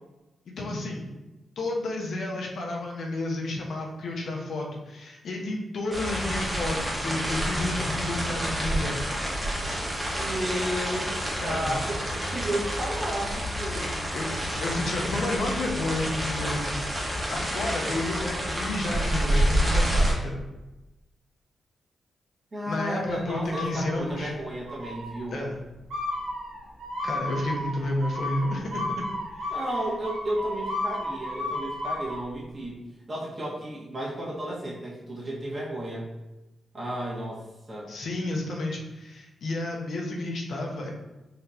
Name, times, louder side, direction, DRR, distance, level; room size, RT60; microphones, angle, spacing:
voice 1, 0.6-1.0 1.6-9.0 11.4-11.7 14.1-16.7 17.1-20.4 22.7-24.3 25.3-25.6 27.0-29.1 29.3-29.6 37.9-40.9, left 2 dB, 75° left, 0 dB, 0.7 m, -31 dB
sound 1, 5.9-20.1, equal, 15° right, 1.1 m, -28 dB
voice 2, 10.1-11.1 11.4-13.9 22.5-25.5 29.5-32.8 33.1-36.1 36.7-37.9, right 1 dB, 35° right, -6 dB, 1.4 m, -33 dB
sound 2, 23.5-24.3 24.7-25.2 25.9-32.2, left 1 dB, 85° right, 1.0 m, -33 dB
4.1 x 3.2 x 2.7 m, 1.0 s
cardioid pair, 90°, 0 cm